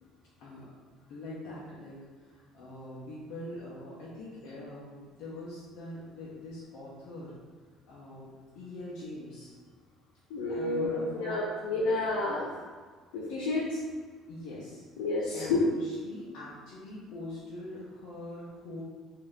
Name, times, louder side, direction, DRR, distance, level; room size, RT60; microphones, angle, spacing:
voice 1, 0.4-0.7 1.1-2.0 2.3-7.3 7.9-9.5 10.5-11.4 14.3-14.8 15.2-18.8, left 2 dB, 65° left, -8 dB, 0.9 m, -43 dB
voice 2, 10.3-12.5 13.1-13.8 15.0-15.6, left 2 dB, 85° left, -5 dB, 0.6 m, -30 dB
3.2 x 2.8 x 3.6 m, 1.5 s
supercardioid pair, 95°, 0 cm